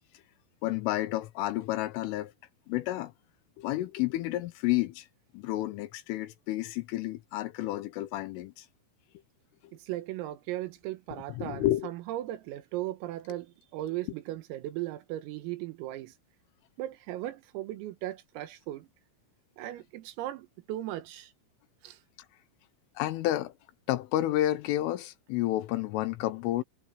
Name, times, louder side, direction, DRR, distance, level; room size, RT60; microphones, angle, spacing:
voice 1, 0.6-2.3 2.7-3.1 3.6-5.1 5.3-8.7 11.3-11.9 23.0-23.5 23.9-26.6, left 15 dB, 80° left, 3.5 m, -30 dB
voice 2, 9.7-16.1 16.8-18.9 19.6-21.3 21.8-22.0, right 15 dB, 85° right, 4.1 m, -37 dB
omnidirectional pair, 5.9 m